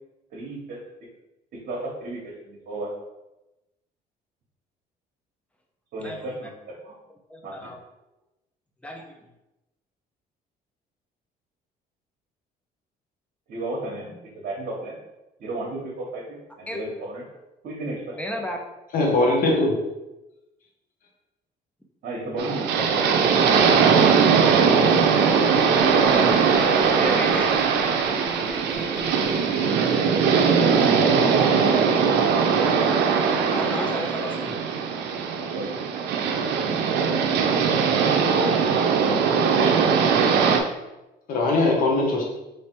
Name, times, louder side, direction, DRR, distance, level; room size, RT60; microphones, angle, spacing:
voice 1, 0.3-0.8 1.5-2.9 5.9-7.0 7.4-7.7 13.5-15.0 15.4-17.2 17.6-18.2 22.0-24.1 25.9-26.5 26.8-27.0 29.0-29.2 30.6-33.0 35.3-35.7 37.6-38.6 39.0-39.3, right 2 dB, 60° right, -4 dB, 1.1 m, -33 dB
voice 2, 6.0-6.3 7.3-7.8 8.8-9.1 16.7-16.8 17.8-18.6 26.9-27.5 33.5-34.6, equal, 5° left, 2 dB, 0.7 m, -33 dB
voice 3, 18.9-19.8 41.3-42.3, left 2 dB, 55° left, -1 dB, 1.1 m, -20 dB
sound 1, 22.4-40.6, right 6 dB, 80° right, 0.6 m, -20 dB
sound 2, 22.8-23.0 23.3-33.5, right 1 dB, 15° right, 0.9 m, -40 dB
3.3 x 3.2 x 4.5 m, 0.98 s
cardioid pair, 110°, 17 cm